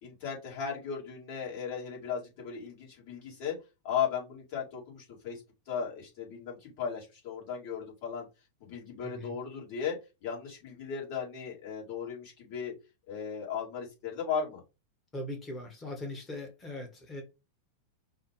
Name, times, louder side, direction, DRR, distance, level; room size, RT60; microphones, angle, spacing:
voice 1, 0.0-3.6 3.8-8.3 8.6-10.0 10.2-12.7 13.1-14.6, left 7 dB, 45° left, 2.4 m, -36 dB
voice 2, 9.0-9.4 15.1-17.2, left 1 dB, 20° left, 1.4 m, -40 dB
5.4 x 2.4 x 3.2 m
figure-of-eight pair, 90°, 0 cm